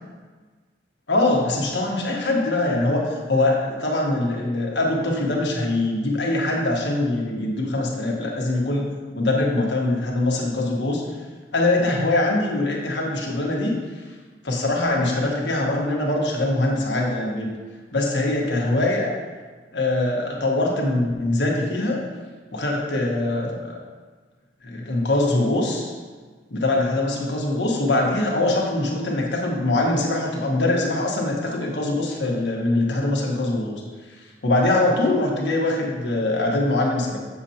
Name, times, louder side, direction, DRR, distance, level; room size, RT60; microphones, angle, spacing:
voice 1, 1.1-8.9 9.1-11.0 11.5-13.8 14.4-17.5 17.9-19.1 19.7-22.0 22.5-23.8 24.6-25.9 26.5-33.8 34.4-37.2, left 2 dB, 75° left, -2 dB, 1.3 m, -23 dB
7.1 x 6.4 x 2.9 m, 1.4 s
head